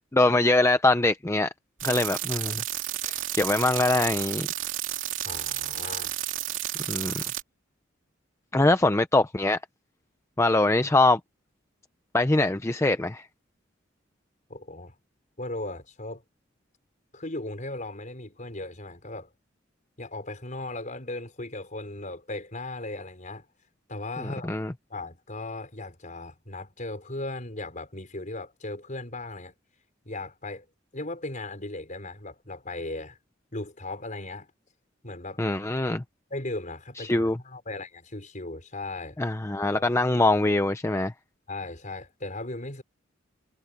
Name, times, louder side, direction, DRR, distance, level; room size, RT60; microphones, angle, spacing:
voice 1, 0.1-1.5 1.8-2.6 3.0-4.5 6.9-7.2 8.5-9.6 10.4-11.2 12.1-13.3 24.2-24.7 35.4-36.0 37.0-37.4 39.2-41.1, left 2 dB, 15° left, 0.6 m, -23 dB
sound 1, 1.8-7.4, right 13 dB, 80° right, 2.5 m, -31 dB
voice 2, 5.2-6.1 14.5-14.9 15.4-16.2 17.1-19.3 20.0-23.5 23.9-24.5 24.9-29.5 30.1-30.7 30.9-33.2 33.5-34.5 35.0-35.4 36.3-39.2 39.7-40.1 41.5-42.8, left 2 dB, 40° left, 5.4 m, -37 dB
head